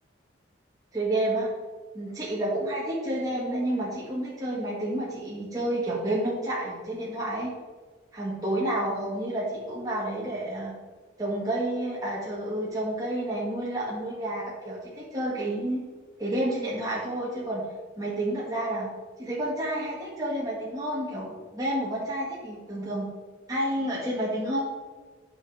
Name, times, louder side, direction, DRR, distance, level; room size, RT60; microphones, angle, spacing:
voice 1, 0.9-1.5 1.9-7.5 8.1-10.7 11.2-15.8 16.2-17.6 18.0-18.9 19.2-23.1 23.5-24.6, right 1 dB, 20° right, -6 dB, 1.7 m, -30 dB
8.9 x 5.9 x 4.7 m, 1.4 s
head